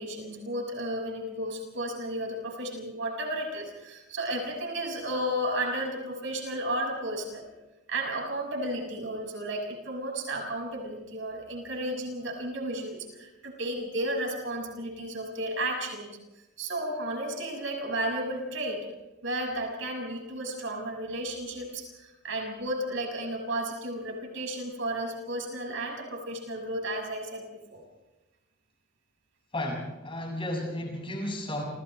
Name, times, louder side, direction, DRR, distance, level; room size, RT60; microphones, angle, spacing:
voice 1, 0.0-7.5 7.9-16.2 16.6-18.9 19.2-27.4 27.7-27.8, right 1 dB, 60° right, 1 dB, 6.4 m, -33 dB
voice 2, 29.5-31.6, left 1 dB, 25° left, 0 dB, 6.7 m, -33 dB
29.0 x 28.5 x 3.4 m, 1.0 s
head